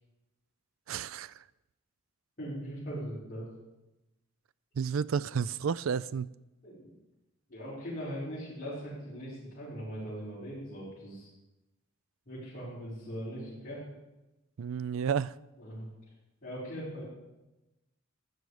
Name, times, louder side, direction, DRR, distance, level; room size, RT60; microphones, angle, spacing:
voice 1, 0.9-1.3 4.8-6.3 14.6-15.4, right 6 dB, 75° right, 19 dB, 0.4 m, -31 dB
voice 2, 2.4-3.5 6.6-6.9 7.5-11.3 12.2-13.8 15.6-15.9 16.4-17.0, equal, 45° left, -12 dB, 5.2 m, -40 dB
15.5 x 10.5 x 4.9 m, 0.99 s
head